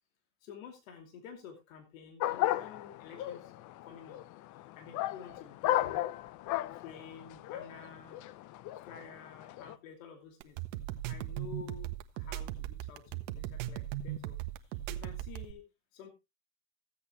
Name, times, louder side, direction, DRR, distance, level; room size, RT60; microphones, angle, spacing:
voice 1, 0.4-3.5 3.8-4.2 4.8-6.0 6.7-8.2 8.9-10.6 11.1-14.3 14.9-15.6 15.9-16.1, left 6 dB, 75° left, 5 dB, 2.7 m, -50 dB
sound 1, 2.2-9.8, left 14 dB, 45° left, 0.8 m, -35 dB
sound 2, 10.4-15.5, right 13 dB, 65° right, 1.3 m, -38 dB
15.5 x 8.5 x 3.1 m, 0.25 s
hypercardioid pair, 100°, 40 cm